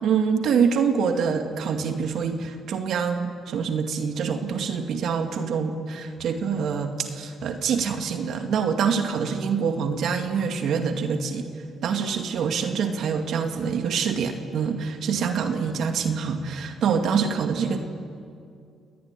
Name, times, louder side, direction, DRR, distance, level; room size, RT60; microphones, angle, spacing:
voice 1, 0.0-11.5 11.8-17.8, right 6 dB, 70° right, 5 dB, 2.2 m, -25 dB
29.0 x 19.5 x 9.9 m, 2.4 s
cardioid pair, 90°, 0 cm